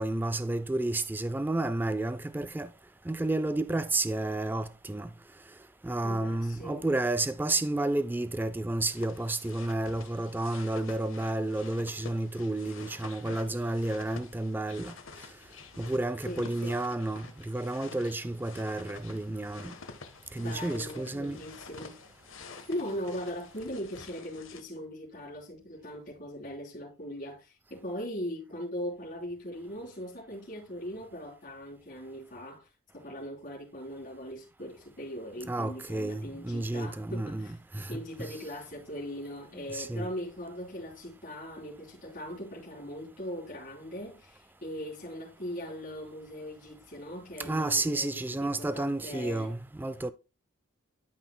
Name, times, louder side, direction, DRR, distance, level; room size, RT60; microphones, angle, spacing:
voice 1, 0.0-2.7 3.1-5.1 5.8-14.9 15.8-19.7 20.3-21.4 35.5-38.4 39.7-40.1 47.4-50.1, right 2 dB, 10° right, 0.3 m, -31 dB
voice 2, 6.0-6.9 16.2-16.8 20.4-22.0 22.7-32.7 32.9-37.6 37.9-49.5, equal, 40° left, 3.7 m, -40 dB
sound 1, 8.9-24.6, left 4 dB, 75° left, 1.3 m, -49 dB
12.5 x 6.0 x 2.3 m
head